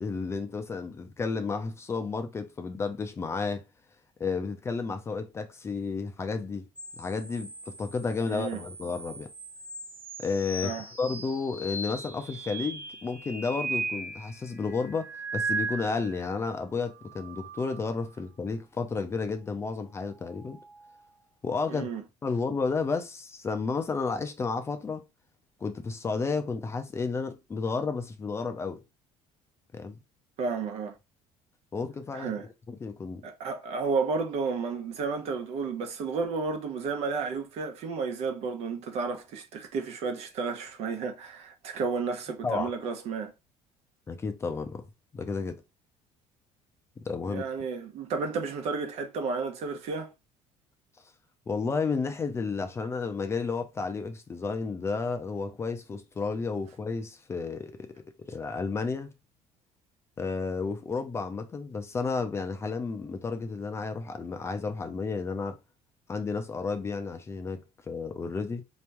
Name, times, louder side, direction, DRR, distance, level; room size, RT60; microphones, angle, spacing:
voice 1, 0.0-3.6 4.2-6.7 7.0-9.3 10.2-20.6 21.4-21.9 22.2-25.0 25.6-28.8 29.7-30.0 31.7-32.3 32.7-33.2 42.4-42.7 44.1-44.9 45.1-45.6 47.0-47.4 51.5-57.9 58.3-59.1 60.2-65.6 66.1-68.6, left 4 dB, 20° left, 0.6 m, -32 dB
sound 1, 6.8-16.3 16.8-18.1 19.9-21.1, right 3 dB, 10° right, 1.0 m, -38 dB
voice 2, 8.3-8.6 10.6-10.8 21.7-22.0 30.4-31.0 32.1-32.5 33.2-43.3 47.3-50.1, right 4 dB, 55° right, 1.0 m, -32 dB
4.0 x 3.0 x 3.4 m
cardioid pair, 145°, 12 cm